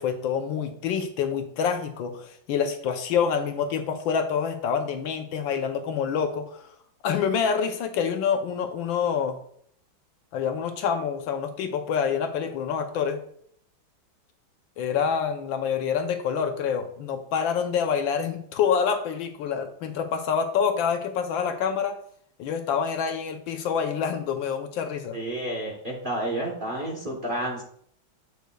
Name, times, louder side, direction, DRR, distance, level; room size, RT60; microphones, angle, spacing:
voice 1, 0.0-6.7 7.0-9.4 10.3-13.2 14.8-22.0 22.4-25.2, left 7 dB, 75° left, 6 dB, 1.3 m, -27 dB
voice 2, 25.1-27.6, right 1 dB, 35° right, -2 dB, 1.0 m, -30 dB
8.0 x 6.4 x 2.3 m, 0.63 s
omnidirectional pair, 2.3 m